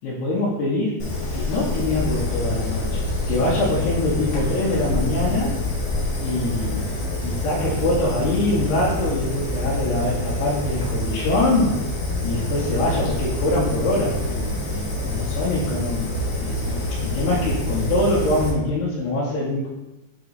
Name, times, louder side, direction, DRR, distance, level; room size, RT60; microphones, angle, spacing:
voice 1, 0.0-1.0 1.3-3.0 3.3-5.6 6.2-6.8 7.2-11.8 12.2-16.1 16.4-19.7, left 2 dB, 85° left, -8 dB, 3.1 m, -24 dB
Fire, 1.0-18.5, left 1 dB, 70° left, 1.1 m, -26 dB
8.3 x 3.0 x 3.9 m, 0.97 s
omnidirectional pair, 4.6 m